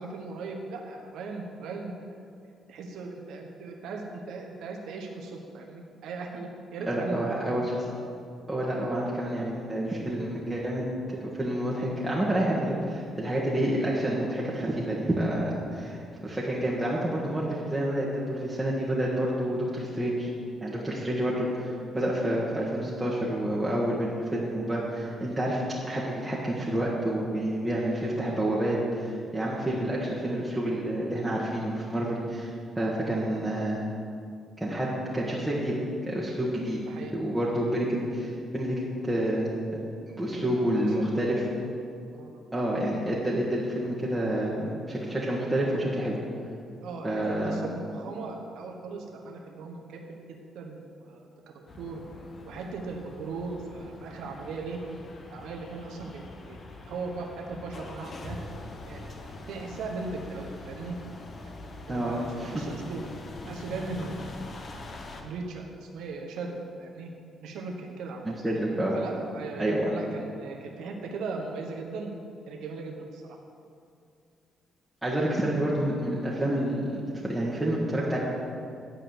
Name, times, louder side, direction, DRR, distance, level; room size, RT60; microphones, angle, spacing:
voice 1, 0.0-1.9 2.7-7.7 33.1-33.4 36.9-37.1 40.3-41.4 42.1-42.4 46.8-51.3 51.8-52.0 52.5-54.8 55.3-56.2 56.5-56.6 56.9-58.4 58.8-61.0 61.9-63.0 63.5-64.7 65.2-67.1 67.4-68.2 68.9-72.1 72.5-73.2, right 4 dB, 80° right, 0 dB, 1.0 m, -38 dB
voice 2, 6.9-7.8 8.5-20.3 20.6-25.6 25.9-33.8 34.6-35.8 36.1-36.8 37.1-39.8 40.2-41.4 42.5-46.2 47.0-47.6 61.9-62.6 68.2-69.0 69.6-69.9 75.0-78.2, right 1 dB, 10° right, -7 dB, 1.5 m, -29 dB
sound 1, 51.7-65.2, left 2 dB, 45° left, 1.0 m, -43 dB
9.5 x 4.9 x 7.7 m, 2.4 s
cardioid pair, 90°, 0 cm